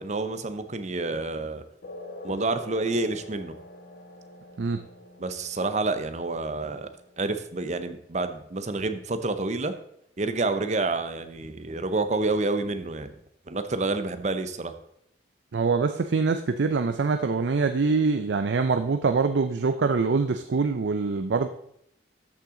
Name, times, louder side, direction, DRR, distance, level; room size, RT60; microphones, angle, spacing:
voice 1, 0.0-1.6 2.2-3.5 5.2-9.7 10.2-13.1 13.5-14.7, right 3 dB, 40° right, 10 dB, 0.7 m, -28 dB
sound 1, 1.8-8.8, left 1 dB, 75° left, 1.4 m, -46 dB
voice 2, 15.5-21.5, right 4 dB, 80° right, 8 dB, 0.5 m, -24 dB
13.5 x 5.8 x 3.8 m, 0.74 s
head